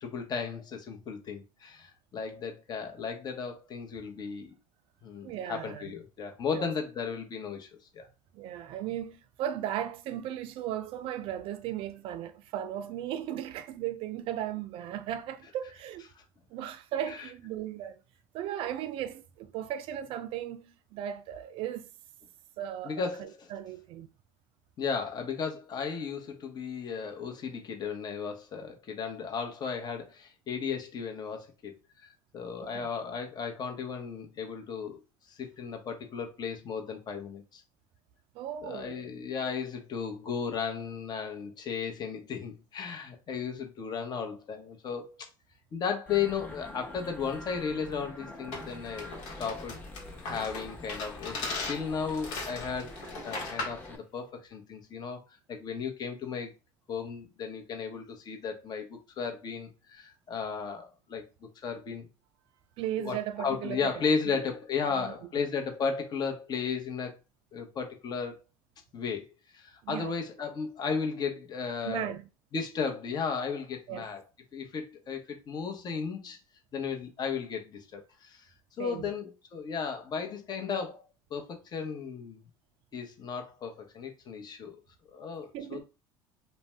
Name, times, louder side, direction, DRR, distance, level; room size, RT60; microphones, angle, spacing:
voice 1, 0.0-4.5 5.0-7.7 7.9-8.1 17.1-17.3 22.8-23.5 24.8-35.0 35.3-37.6 38.6-45.3 45.7-49.8 50.2-52.9 53.2-55.2 55.5-56.5 56.9-61.3 61.6-62.1 63.0-67.2 67.5-68.4 68.9-69.3 69.5-72.1 72.5-74.2 74.5-76.4 76.7-78.5 78.8-81.0 81.3-82.4 82.9-84.8 85.1-85.8, left 6 dB, 40° left, 0.9 m, -35 dB
voice 2, 5.2-5.9 6.5-6.6 8.3-16.0 16.5-17.9 18.3-21.9 22.6-24.1 32.6-32.9 38.3-39.1 62.8-64.0 64.9-65.1 69.8-70.1 71.8-72.3 73.9-74.1 78.8-79.1 85.5-85.8, right 11 dB, 60° right, 0.4 m, -36 dB
sound 1, 46.1-54.0, left 1 dB, 15° left, 0.8 m, -45 dB
sound 2, 48.5-53.9, left 3 dB, 75° left, 1.1 m, -38 dB
2.6 x 2.1 x 3.3 m
supercardioid pair, 90°, 10 cm